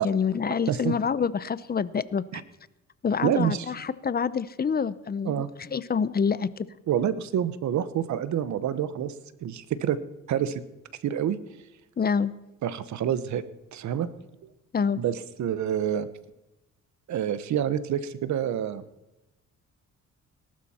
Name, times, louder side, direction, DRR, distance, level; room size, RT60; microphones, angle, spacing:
voice 1, 0.0-2.4 3.0-6.7 12.0-12.3 14.7-15.0, left 6 dB, 30° left, 16 dB, 0.7 m, -27 dB
voice 2, 3.2-3.7 5.2-5.5 6.9-9.1 9.4-10.0 10.3-10.6 11.0-11.4 12.6-13.4 13.7-14.1 14.4-14.5 15.0-16.1 17.1-18.8, right 9 dB, 70° right, 14 dB, 1.1 m, -27 dB
19.0 x 12.0 x 4.3 m, 0.99 s
cardioid pair, 90°, 30 cm